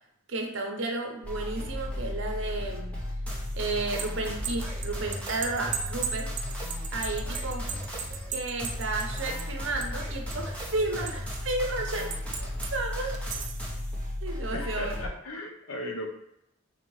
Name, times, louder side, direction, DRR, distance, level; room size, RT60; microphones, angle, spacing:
voice 1, 0.3-2.9 3.6-6.3 6.9-7.8 8.3-13.2 14.2-15.0, right 2 dB, 65° right, 2 dB, 0.8 m, -32 dB
sound 1, 1.2-15.1, left 1 dB, 5° left, 0.7 m, -35 dB
sound 2, 3.7-10.0 10.3-11.5 12.1-12.7 13.1-13.7, right 7 dB, 35° right, 0.3 m, -36 dB
voice 2, 14.5-16.1, left 1 dB, 85° left, 3 dB, 0.7 m, -37 dB
4.2 x 3.1 x 3.1 m, 0.79 s
head